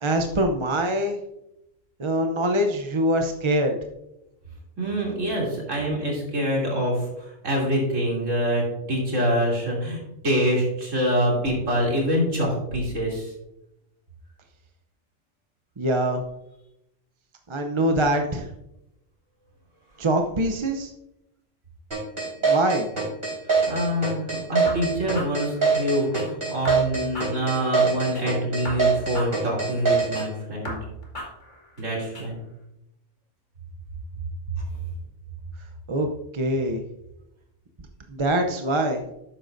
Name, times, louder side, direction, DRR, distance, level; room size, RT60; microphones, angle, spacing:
voice 1, 0.0-1.2 2.0-3.8 15.8-16.2 17.5-18.5 20.0-20.9 22.4-22.9 35.9-36.1 36.3-36.8 38.1-39.0, right 1 dB, 30° right, 4 dB, 0.6 m, -23 dB
voice 2, 4.8-13.3 23.7-30.7 31.8-32.3, equal, 85° right, -3 dB, 3.4 m, -25 dB
sound 1, 21.9-30.3, right 5 dB, 50° right, 4.4 m, -23 dB
sound 2, 24.7-26.3 26.6-28.3 28.6-30.3 30.6-32.3, left 1 dB, 40° left, 2.2 m, -38 dB
12.0 x 8.6 x 2.6 m, 0.87 s
omnidirectional pair, 1.3 m